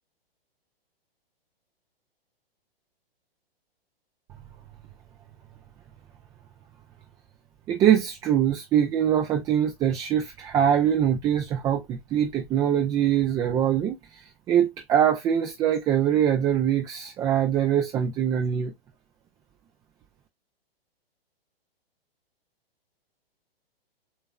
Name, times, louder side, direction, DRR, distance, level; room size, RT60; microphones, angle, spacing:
voice 1, 7.7-14.0 14.5-18.7, right 9 dB, 10° right, 0.4 m, -23 dB
7.1 x 3.0 x 2.2 m
figure-of-eight pair, 115°, 30 cm